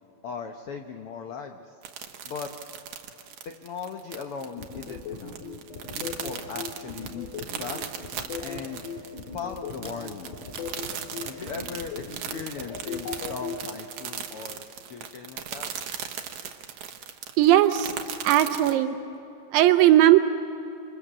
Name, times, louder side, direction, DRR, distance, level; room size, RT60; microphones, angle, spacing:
voice 1, 0.2-1.7 2.2-2.5 3.4-5.4 5.9-8.0 8.4-8.8 9.3-10.4 11.3-15.7, left 6 dB, 85° left, 5 dB, 1.2 m, -38 dB
sound 1, 1.8-18.8, right 9 dB, 65° right, 2.3 m, -38 dB
sound 2, 4.6-13.6, left 6 dB, 65° left, 3.6 m, -37 dB
sound 3, 8.7-14.0, right 1 dB, 5° right, 5.8 m, -53 dB
voice 2, 17.4-17.9 18.2-19.0 19.5-20.2, right 13 dB, 80° right, 8 dB, 2.4 m, -18 dB
27.5 x 27.0 x 7.5 m, 3.0 s
omnidirectional pair, 4.0 m